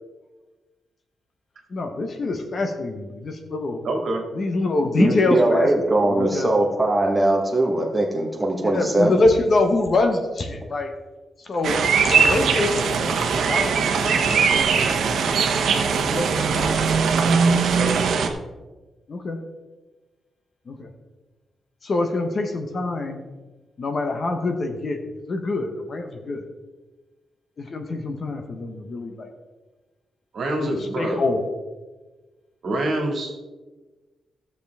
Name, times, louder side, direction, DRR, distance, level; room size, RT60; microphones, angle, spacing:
voice 1, 1.7-3.8 4.3-5.7 6.1-6.5 8.6-10.9 11.4-11.8 12.0-14.6 16.1-16.7 17.2-17.4 19.1-19.4 20.7-20.9 21.8-23.2 23.8-25.0 25.3-26.4 27.6-29.3 30.6-31.4, left 2 dB, 40° left, 5 dB, 1.0 m, -25 dB
voice 2, 3.8-4.3 17.7-17.9 30.3-31.2 32.6-33.3, right 1 dB, 55° right, 1 dB, 2.0 m, -25 dB
voice 3, 5.0-9.2, right 2 dB, 10° right, 0 dB, 1.2 m, -21 dB
sound 1, 11.6-18.3, right 5 dB, 75° right, 0.9 m, -20 dB
14.0 x 7.0 x 3.5 m, 1.2 s
wide cardioid pair, 170°, 0 cm